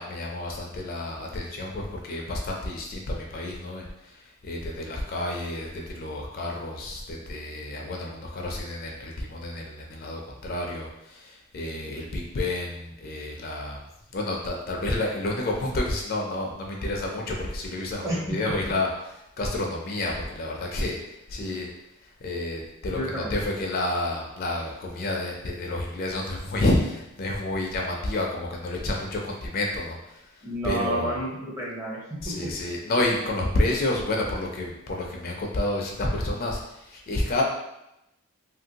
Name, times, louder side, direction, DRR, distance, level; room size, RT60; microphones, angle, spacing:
voice 1, 0.0-13.8 14.1-21.7 22.0-31.2 32.2-37.4, left 2 dB, 45° left, -1 dB, 0.4 m, -30 dB
voice 2, 18.0-18.5 22.9-23.4 30.4-32.5, right 1 dB, 15° right, -4 dB, 0.6 m, -31 dB
2.9 x 2.5 x 2.8 m, 0.86 s
head